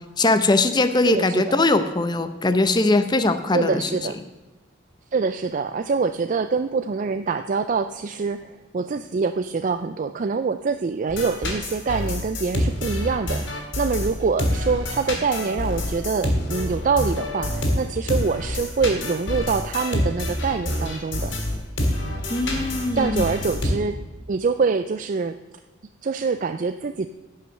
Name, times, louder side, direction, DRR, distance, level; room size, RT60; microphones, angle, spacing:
voice 1, 0.2-3.9 22.3-23.2, left 2 dB, 20° left, 10 dB, 0.7 m, -21 dB
voice 2, 1.0-1.6 3.5-4.2 5.1-21.3 22.9-24.0 24.3-25.4 26.0-27.1, right 5 dB, 40° right, 10 dB, 0.4 m, -25 dB
sound 1, 11.1-23.7, left 1 dB, 75° left, 2.9 m, -27 dB
15.5 x 5.7 x 6.5 m, 1.2 s
head